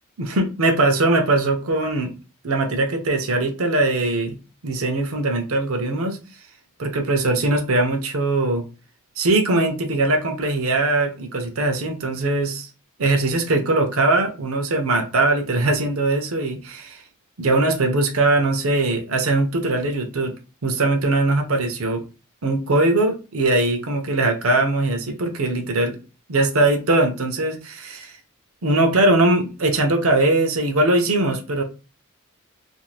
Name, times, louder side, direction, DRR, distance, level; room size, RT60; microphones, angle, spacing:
voice 1, 0.2-2.1 2.4-4.4 4.6-6.2 6.8-8.6 9.2-12.7 13.0-17.0 17.4-20.3 20.6-22.0 22.4-26.0 26.3-28.1 28.6-31.6, right 2 dB, 70° right, 4 dB, 0.7 m, -21 dB
2.6 x 2.5 x 3.2 m, 0.31 s
head